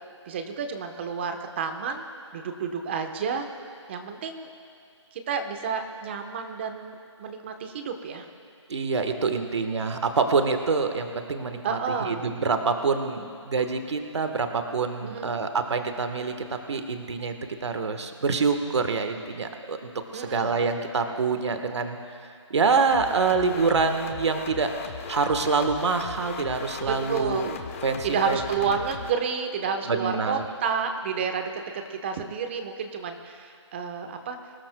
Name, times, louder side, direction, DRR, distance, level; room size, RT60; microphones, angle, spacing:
voice 1, 0.2-2.0 2.3-3.5 3.9-4.5 5.1-8.3 11.6-12.2 15.0-15.3 20.1-20.6 26.9-27.5 28.0-34.5, right 6 dB, 20° right, 6 dB, 1.0 m, -30 dB
voice 2, 8.7-17.3 17.6-27.6 27.8-28.7 29.9-30.4, right 4 dB, 65° right, 6 dB, 1.3 m, -26 dB
sound 1, 22.9-29.1, left 6 dB, 25° left, 0.9 m, -38 dB
26.5 x 17.5 x 2.2 m, 2.4 s
hypercardioid pair, 165°, 16 cm